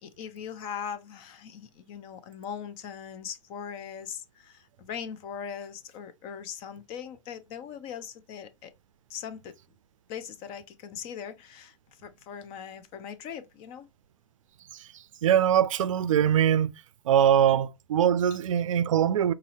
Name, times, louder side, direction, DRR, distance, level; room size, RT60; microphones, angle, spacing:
voice 1, 0.0-8.7 9.1-9.5 10.1-11.8 12.0-13.9, left 8 dB, 35° left, 0.6 m, -40 dB
voice 2, 15.2-16.7 17.1-19.3, right 9 dB, 70° right, 0.4 m, -22 dB
4.0 x 2.7 x 2.6 m
hypercardioid pair, 125°, 17 cm